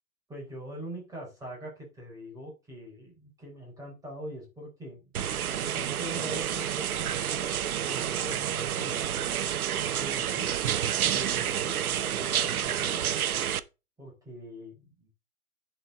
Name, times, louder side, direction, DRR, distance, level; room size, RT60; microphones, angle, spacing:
voice 1, 0.3-5.3 5.6-7.4 7.8-9.3 10.0-10.5 10.8-13.1 14.0-15.1, right 1 dB, 10° right, -2 dB, 4.0 m, -42 dB
sound 1, 5.1-13.6, right 10 dB, 70° right, 0.9 m, -29 dB
11.0 x 4.7 x 3.7 m, 0.28 s
hypercardioid pair, 150°, 44 cm